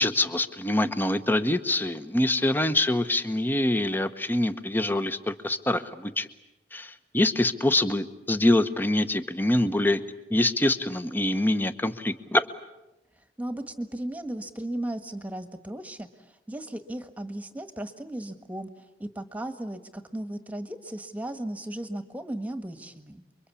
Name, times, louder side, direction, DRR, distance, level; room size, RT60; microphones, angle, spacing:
voice 1, 0.0-6.3 6.7-10.0 10.3-12.5, left 1 dB, 10° left, 11 dB, 1.0 m, -25 dB
voice 2, 13.4-23.2, right 1 dB, 10° right, 8 dB, 1.5 m, -36 dB
29.5 x 23.5 x 8.5 m, 0.95 s
head